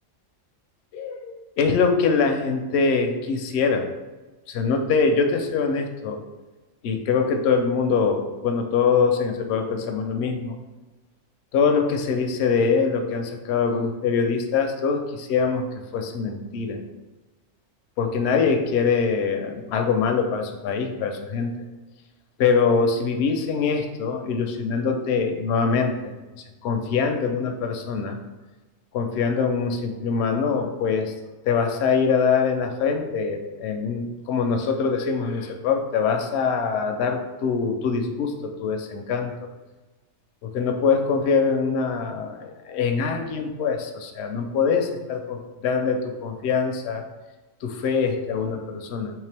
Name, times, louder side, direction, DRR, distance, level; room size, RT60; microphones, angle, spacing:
voice 1, 0.9-3.8 4.5-6.2 6.8-10.5 11.5-15.6 15.9-16.8 18.0-21.5 22.4-26.1 26.6-28.2 28.9-31.1 31.5-39.5 40.4-47.0 47.6-49.1, left 5 dB, 65° left, 4 dB, 0.7 m, -23 dB
3.7 x 3.2 x 3.3 m, 1.2 s
omnidirectional pair, 1.3 m